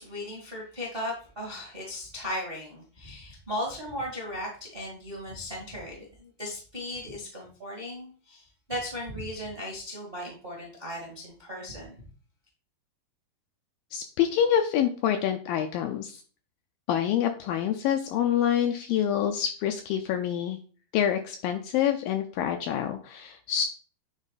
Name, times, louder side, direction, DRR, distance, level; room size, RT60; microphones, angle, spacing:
voice 1, 0.0-12.0, left 1 dB, 35° right, -2 dB, 0.9 m, -37 dB
voice 2, 13.9-16.2 16.9-20.6 20.9-23.7, left 9 dB, 80° left, 5 dB, 2.1 m, -26 dB
9.0 x 3.6 x 4.1 m, 0.41 s
omnidirectional pair, 4.5 m